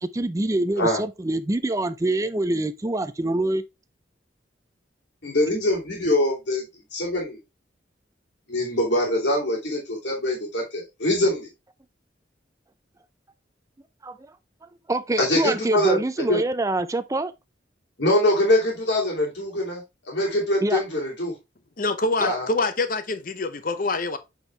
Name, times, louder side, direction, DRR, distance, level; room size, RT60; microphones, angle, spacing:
voice 1, 0.0-3.6 14.0-14.2 14.9-17.3 20.6-20.8 22.2-22.4, right 2 dB, 15° right, 0.5 m, -25 dB
voice 2, 5.2-6.6 6.9-7.4 8.5-11.5 15.2-16.0 16.3-16.4 18.0-21.3 22.2-22.5, left 1 dB, 70° left, 2.7 m, -23 dB
voice 3, 21.8-24.2, left 3 dB, 45° left, 0.8 m, -25 dB
8.1 x 4.6 x 3.3 m
head